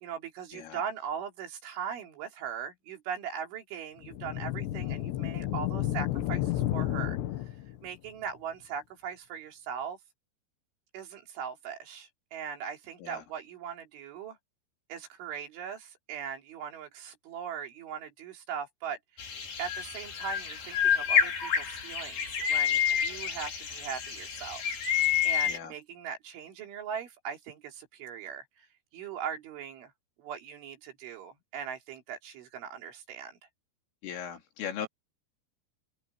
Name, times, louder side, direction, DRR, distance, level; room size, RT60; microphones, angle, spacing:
voice 1, 0.0-7.2 7.8-10.0 10.9-14.4 14.9-19.3 19.6-24.6 24.9-28.7 28.9-29.9 30.2-33.4, right 7 dB, 75° right, 5.4 m, -40 dB
sound 1, 4.0-7.9, left 14 dB, 70° left, 3.3 m, -31 dB
sound 2, 19.2-25.6, left 8 dB, 50° left, 5.8 m, -29 dB
voice 2, 25.1-25.7 34.0-34.9, left 8 dB, 85° left, 5.9 m, -39 dB
open air
omnidirectional pair, 5.7 m